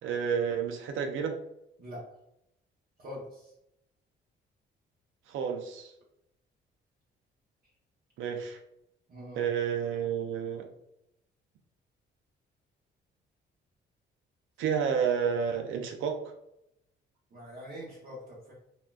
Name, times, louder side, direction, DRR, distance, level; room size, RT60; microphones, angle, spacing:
voice 1, 0.0-1.3 5.3-5.9 8.2-8.6 9.3-10.7 14.6-16.2, right 7 dB, 80° right, 4 dB, 0.4 m, -30 dB
voice 2, 3.0-3.4 9.1-9.4 17.3-18.5, equal, 50° right, -6 dB, 0.9 m, -43 dB
3.6 x 2.2 x 2.3 m, 0.81 s
cardioid pair, 90°, 20 cm